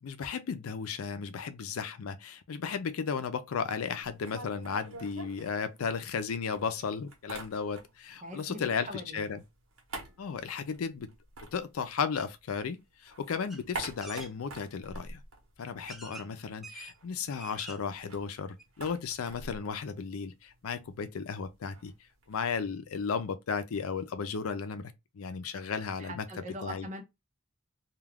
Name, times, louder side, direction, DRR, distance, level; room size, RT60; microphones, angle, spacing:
voice 1, 0.0-8.9 9.1-9.4 10.2-11.1 11.4-15.2 15.6-21.9 22.3-26.2 26.6-26.9, left 6 dB, 90° left, 0.5 m, -35 dB
sound 1, 4.0-6.2 6.5-8.2 8.4-12.6 12.9-16.2 16.5-16.6 16.8-22.6, right 2 dB, 85° right, 0.9 m, -46 dB
voice 2, 8.2-9.2 26.0-27.0, equal, 35° right, 0.7 m, -42 dB
sound 2, 13.5-13.6 14.0-14.3 15.2-15.3 15.9-16.3 16.6-16.9 17.3-17.9 18.3-18.4 18.6-18.7, right 2 dB, ahead, 0.4 m, -45 dB
2.3 x 2.3 x 3.3 m
head